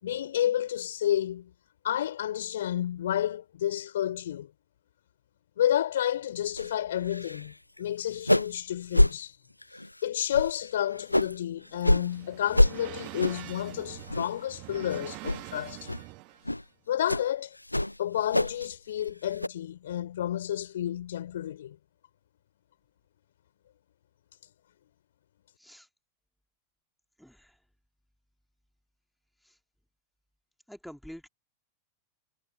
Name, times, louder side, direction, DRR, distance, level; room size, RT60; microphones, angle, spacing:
voice 1, 0.0-1.5 1.8-4.5 5.6-9.4 10.0-15.9 16.9-17.6 18.0-21.8, left 11 dB, 60° left, 4.0 m, -30 dB
sound 1, 6.6-6.7 7.0-7.5 7.8-7.9 8.1-8.6 8.9-9.1 9.6-9.9 10.3-11.4 11.8-12.1 12.5-12.7 13.2-13.5 13.9-14.5 14.8-14.9 15.2-15.4 15.9-16.0 16.4-16.6 17.1-17.3 17.7-18.7 19.0-19.5, left 1 dB, 85° left, 0.8 m, -25 dB
sound 2, 11.5-16.5, right 27 dB, 45° right, 1.8 m, -45 dB
voice 2, 27.2-27.5 29.4-29.5 30.7-31.3, equal, ahead, 2.6 m, -47 dB
figure-of-eight pair, 90°, 0 cm